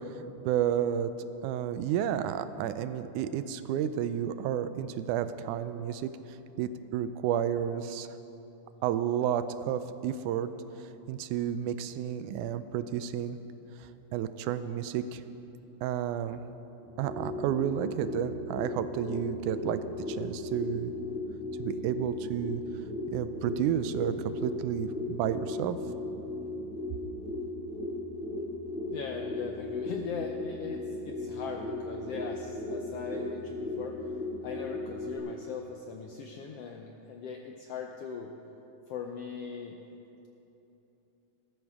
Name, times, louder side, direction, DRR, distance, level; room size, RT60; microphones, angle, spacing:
voice 1, 0.5-1.1 1.4-6.1 6.6-8.1 8.8-10.5 11.1-13.4 14.1-15.2 15.8-16.4 17.0-19.8 20.1-20.9 21.6-22.6 23.1-24.1 24.4-25.8, right 10 dB, 85° right, 12 dB, 2.0 m, -31 dB
sound 1, 16.8-35.2, left 2 dB, 5° right, 0.5 m, -37 dB
voice 2, 28.9-34.0 34.4-38.3 38.9-39.8, left 6 dB, 80° left, 3 dB, 1.4 m, -40 dB
17.5 x 13.5 x 3.6 m, 3.0 s
omnidirectional pair, 3.5 m